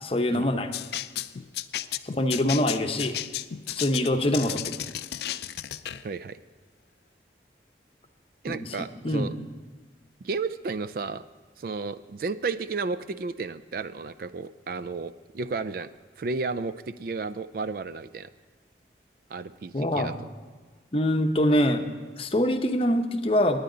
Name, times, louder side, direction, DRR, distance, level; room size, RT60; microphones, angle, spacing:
voice 1, 0.0-0.7 2.0-3.2 3.7-4.8 8.5-9.3 19.7-20.1 20.9-21.9 22.2-23.6, left 1 dB, 30° left, 6 dB, 0.8 m, -24 dB
sound 1, 0.7-6.0, left 12 dB, 60° left, 0.4 m, -34 dB
voice 2, 6.0-6.4 8.4-9.4 10.2-11.2 11.6-15.9 16.2-18.3 19.3-20.1, right 4 dB, 50° right, 14 dB, 0.3 m, -32 dB
18.5 x 9.6 x 3.9 m, 1.4 s
head